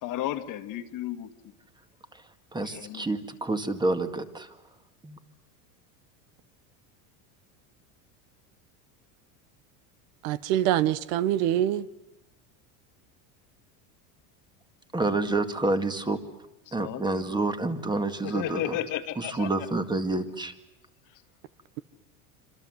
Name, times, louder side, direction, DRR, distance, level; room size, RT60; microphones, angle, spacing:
voice 1, 0.0-1.3 2.6-3.1 16.8-17.3 18.2-19.7 21.1-21.2, left 12 dB, 50° left, 1.9 m, -34 dB
voice 2, 2.5-4.6 5.0-5.2 14.9-16.2 16.7-18.8 19.2-20.6, right 2 dB, 10° right, 2.0 m, -28 dB
voice 3, 10.2-11.9, right 12 dB, 75° right, 1.2 m, -25 dB
26.5 x 26.5 x 7.9 m
supercardioid pair, 140°, 42 cm